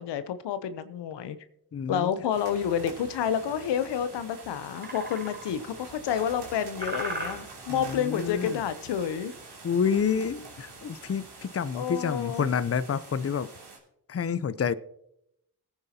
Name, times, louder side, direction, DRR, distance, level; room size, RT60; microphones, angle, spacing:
voice 1, 0.0-1.4 1.9-9.3 11.7-12.5, left 8 dB, 90° left, 0.7 m, -29 dB
voice 2, 1.7-2.1 7.7-8.6 9.6-13.5 14.1-14.7, left 6 dB, 35° left, 0.6 m, -28 dB
sound 1, 2.3-13.8, right 3 dB, 75° right, 3.1 m, -46 dB
sound 2, 4.2-4.3 4.8-5.7 6.1-6.6 6.8-7.8 8.2-8.5 9.0-9.6 9.9-10.0 10.3-10.4 10.8-11.2, right 1 dB, 25° right, 3.5 m, -38 dB
20.0 x 8.9 x 2.8 m
supercardioid pair, 45°, 41 cm